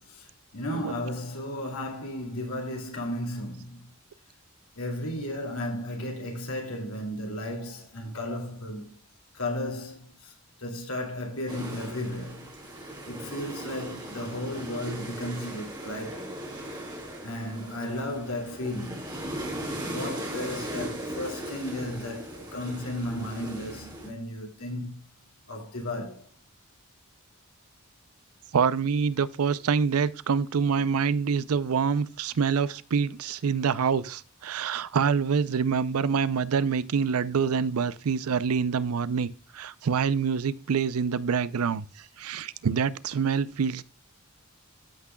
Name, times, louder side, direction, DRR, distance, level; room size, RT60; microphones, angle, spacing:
voice 1, 0.1-3.8 4.8-8.9 9.3-10.3 10.6-12.5 13.1-16.3 17.2-19.1 19.8-25.0 25.5-26.2, left 1 dB, 90° left, 2.5 m, -34 dB
sound 1, 11.5-24.1, right 1 dB, 20° right, 2.8 m, -38 dB
voice 2, 28.5-41.9 42.2-43.8, right 6 dB, 90° right, 0.5 m, -26 dB
14.0 x 6.1 x 2.2 m
head